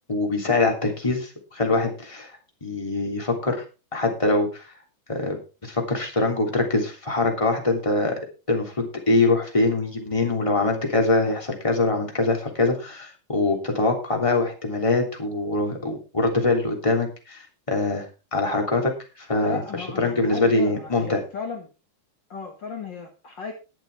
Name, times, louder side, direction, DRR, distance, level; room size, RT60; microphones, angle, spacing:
voice 1, 0.1-2.3 2.6-3.6 3.9-4.7 5.1-5.4 5.6-8.2 8.5-17.4 17.7-18.0 18.3-18.9 19.2-19.6 20.0-21.2, left 2 dB, 10° left, 1 dB, 2.4 m, -23 dB
voice 2, 19.4-21.7 22.3-23.5, left 5 dB, 65° left, 2 dB, 1.1 m, -35 dB
21.5 x 7.4 x 3.5 m, 0.31 s
omnidirectional pair, 4.7 m